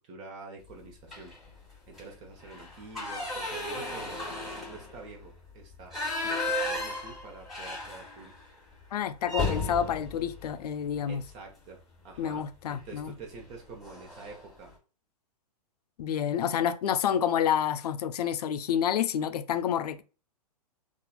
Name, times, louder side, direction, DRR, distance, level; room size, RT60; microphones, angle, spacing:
voice 1, 0.0-1.3 1.9-4.2 4.7-6.0 6.2-8.3 11.1-14.7, right 3 dB, 35° right, 1.0 m, -47 dB
sound 1, 1.1-1.5 1.9-2.0 2.4-8.4 8.7-8.8 9.2-11.4 12.7-13.0 13.4-13.5 13.8-14.4, left 2 dB, ahead, 1.2 m, -35 dB
voice 2, 8.9-11.2 12.2-13.1 16.0-20.0, left 9 dB, 80° left, 0.4 m, -29 dB
3.0 x 2.4 x 2.3 m
hypercardioid pair, 140°, 20 cm